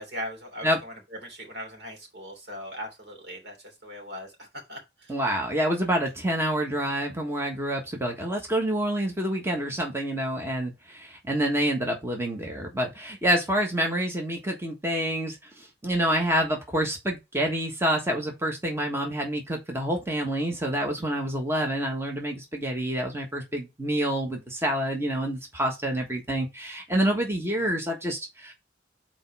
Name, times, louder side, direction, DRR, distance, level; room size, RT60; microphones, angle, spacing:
voice 1, 0.0-5.2, equal, 70° right, 3.0 m, -39 dB
voice 2, 5.1-28.5, right 1 dB, 15° right, 1.5 m, -27 dB
5.4 x 4.5 x 5.4 m
head